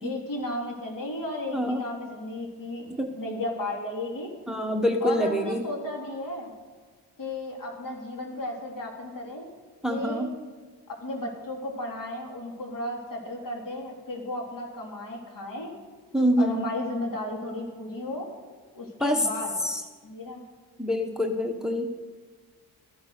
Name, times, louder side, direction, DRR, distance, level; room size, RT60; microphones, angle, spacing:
voice 1, 0.0-4.3 5.0-6.5 7.2-9.5 9.9-10.3 10.9-15.7 16.4-18.3 18.7-19.5 20.0-20.4, left 1 dB, 55° left, 1 dB, 3.5 m, -34 dB
voice 2, 1.5-1.9 3.0-3.1 4.5-5.6 9.8-10.3 16.1-16.6 19.0-19.3 19.6-19.8 20.8-21.9, equal, ahead, 5 dB, 1.2 m, -25 dB
13.5 x 11.0 x 6.6 m, 1.4 s
cardioid pair, 70°, 39 cm